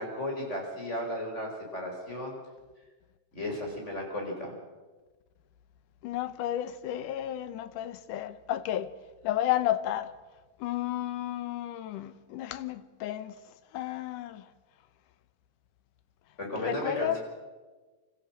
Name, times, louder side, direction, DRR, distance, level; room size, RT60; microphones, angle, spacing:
voice 1, 0.0-2.4 3.3-4.5 16.4-17.2, left 1 dB, 20° left, 5.4 m, -34 dB
voice 2, 6.0-9.0 9.2-10.1 10.6-13.4 13.7-14.5 16.5-17.2, left 12 dB, 75° left, 2.3 m, -32 dB
26.5 x 14.5 x 7.7 m
omnidirectional pair, 4.0 m